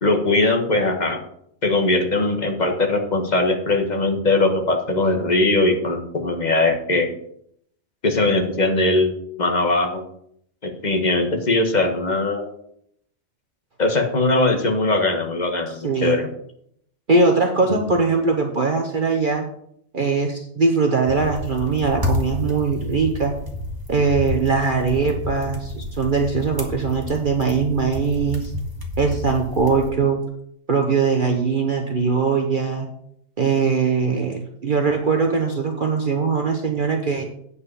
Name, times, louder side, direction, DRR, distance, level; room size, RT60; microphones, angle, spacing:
voice 1, 0.0-1.2 1.6-7.1 8.0-10.0 10.6-12.5 13.8-16.2 17.7-17.8, left 2 dB, 35° left, 4 dB, 1.6 m, -20 dB
voice 2, 15.7-16.2 17.1-19.4 19.9-23.3 23.9-28.5 29.0-30.2 30.7-32.9 33.4-37.2, right 4 dB, 40° right, 2 dB, 1.1 m, -21 dB
sound 1, 21.1-29.9, left 1 dB, 15° right, 1.6 m, -30 dB
9.1 x 5.6 x 6.9 m, 0.71 s
omnidirectional pair, 1.4 m